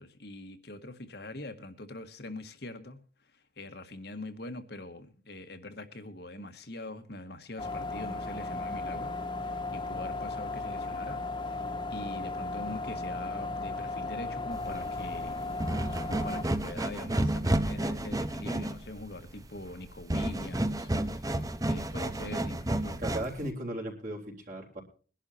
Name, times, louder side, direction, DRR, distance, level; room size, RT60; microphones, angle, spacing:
voice 1, 0.0-3.0 3.6-15.5 16.1-23.0, left 1 dB, 60° left, 1.7 m, -43 dB
sound 1, 7.6-16.4, left 3 dB, 25° left, 1.7 m, -35 dB
sound 2, 14.5-23.5, right 1 dB, 20° right, 0.9 m, -31 dB
voice 2, 23.0-24.8, right 1 dB, 45° right, 3.8 m, -36 dB
22.5 x 11.5 x 2.8 m
head